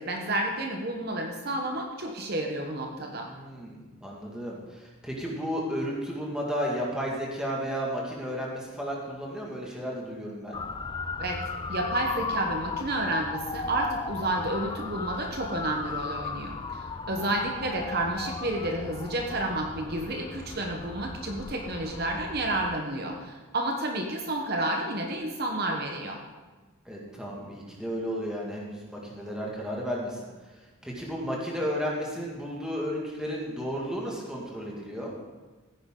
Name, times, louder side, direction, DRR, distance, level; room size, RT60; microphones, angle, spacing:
voice 1, 0.0-3.3 11.2-11.4 11.7-26.2, right 1 dB, 45° right, 1 dB, 1.1 m, -30 dB
voice 2, 3.3-10.6 26.9-30.2 30.8-35.1, equal, 5° right, -3 dB, 2.0 m, -33 dB
Motor vehicle (road) / Siren, 10.5-22.8, left 4 dB, 20° left, 0.4 m, -36 dB
15.5 x 9.7 x 3.8 m, 1.3 s
head